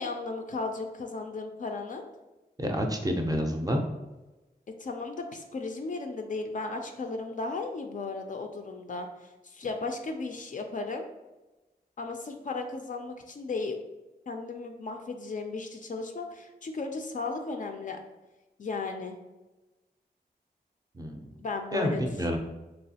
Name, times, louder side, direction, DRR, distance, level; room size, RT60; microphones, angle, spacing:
voice 1, 0.0-2.1 4.8-11.1 12.0-13.8 14.3-18.0 18.6-19.2 21.4-22.0 22.3-22.4, left 3 dB, 50° left, 4 dB, 0.4 m, -35 dB
voice 2, 2.6-3.8 20.9-21.3 21.7-22.4, equal, 20° right, 3 dB, 0.4 m, -28 dB
3.1 x 2.4 x 2.7 m, 1.1 s
cardioid pair, 55°, 17 cm